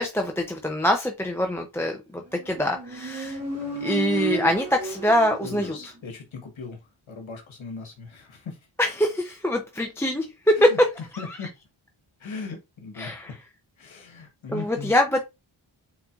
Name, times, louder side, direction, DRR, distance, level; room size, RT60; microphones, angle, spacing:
voice 1, 0.0-3.4 3.8-5.8 8.8-11.4 13.0-13.3 14.5-15.2, left 1 dB, 5° left, 0.5 m, -24 dB
Motorcycle, 2.3-6.0, right 4 dB, 30° right, 1.9 m, -32 dB
voice 2, 5.4-6.8 7.1-8.6 10.6-10.8 11.2-11.5 12.2-13.4 13.8-14.9, left 4 dB, 70° left, 1.2 m, -38 dB
4.2 x 3.8 x 2.4 m
cardioid pair, 55°, 49 cm